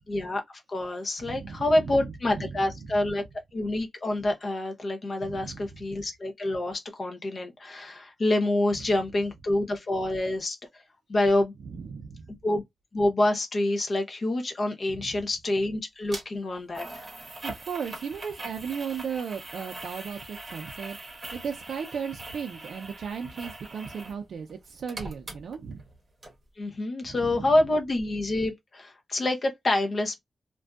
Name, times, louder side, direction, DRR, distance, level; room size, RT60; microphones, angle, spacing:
voice 1, 0.1-0.4 0.7-3.2 3.5-10.6 11.1-11.5 12.4-12.6 12.9-16.9 26.6-30.2, left 1 dB, 40° left, 0.7 m, -27 dB
voice 2, 1.2-2.9 5.2-5.8 11.6-12.3 14.9-15.2 17.4-21.0 21.3-25.8 27.1-27.5, right 6 dB, 75° right, 0.4 m, -36 dB
sound 1, 16.1-16.2 16.7-24.2 24.5-25.9 26.2-26.3, right 2 dB, 25° right, 0.9 m, -41 dB
2.6 x 2.3 x 2.3 m
wide cardioid pair, 120°, 0 cm